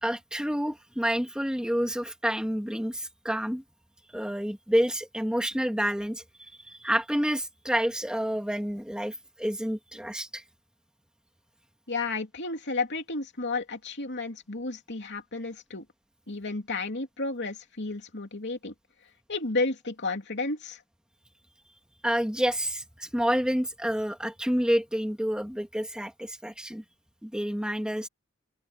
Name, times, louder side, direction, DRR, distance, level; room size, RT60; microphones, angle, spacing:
voice 1, 0.0-3.6 4.1-6.2 6.5-10.4 22.0-26.8 27.2-28.1, equal, 5° right, 2.0 m, -29 dB
voice 2, 11.9-15.8 16.3-18.7 19.3-20.8, left 3 dB, 55° left, 3.0 m, -32 dB
open air
head